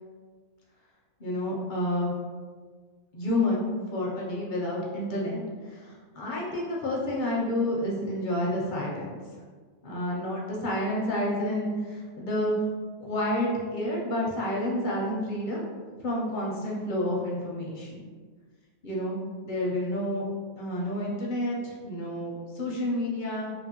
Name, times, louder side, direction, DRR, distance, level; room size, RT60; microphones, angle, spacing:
voice 1, 1.2-2.2 3.1-9.4 9.8-12.6 13.0-15.6 16.0-18.0 18.8-19.2 19.4-20.3 20.6-23.5, left 1 dB, 55° left, -4 dB, 0.6 m, -29 dB
2.7 x 2.5 x 2.8 m, 1.5 s
omnidirectional pair, 1.3 m